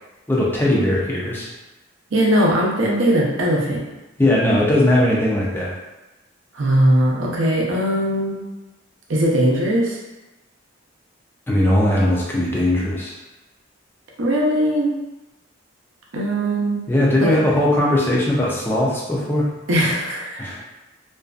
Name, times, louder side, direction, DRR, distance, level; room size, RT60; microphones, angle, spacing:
voice 1, 0.3-1.5 4.2-5.8 11.5-13.1 16.9-19.5 20.4-20.6, left 1 dB, 10° left, -4 dB, 0.4 m, -19 dB
voice 2, 2.1-3.8 6.5-8.4 9.1-10.0 14.2-14.9 16.1-16.8 17.2-17.4 19.7-20.5, right 1 dB, 75° right, -2 dB, 0.6 m, -19 dB
2.5 x 2.3 x 2.3 m, 1.0 s
head